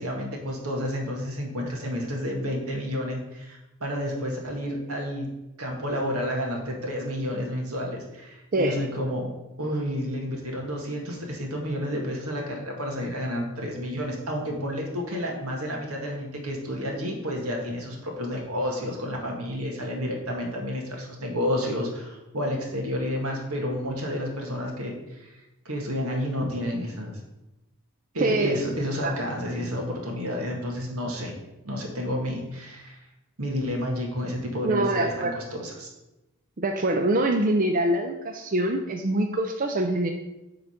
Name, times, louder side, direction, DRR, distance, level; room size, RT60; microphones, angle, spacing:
voice 1, 0.0-5.3 5.6-9.3 9.6-25.3 25.7-27.1 28.1-31.4 31.6-33.0 33.4-35.9, equal, 80° right, 0 dB, 1.8 m, -30 dB
voice 2, 28.2-28.6 29.0-29.2 34.6-35.4 36.6-40.1, right 1 dB, 40° right, 4 dB, 0.5 m, -24 dB
7.9 x 3.9 x 5.8 m, 0.97 s
head